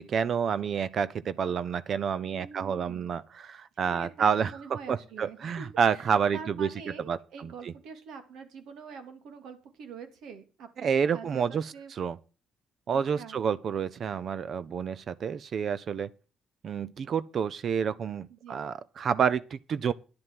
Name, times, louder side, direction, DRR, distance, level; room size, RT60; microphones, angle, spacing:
voice 1, 0.0-6.7 7.1-7.7 10.8-12.2 12.9-16.1 16.6-19.9, right 7 dB, 55° right, 0.7 m, -29 dB
voice 2, 2.2-3.1 3.7-11.9 12.9-13.4 18.3-18.5, right 6 dB, 80° right, 2.6 m, -45 dB
10.5 x 7.8 x 7.6 m
cardioid pair, 90°, 0 cm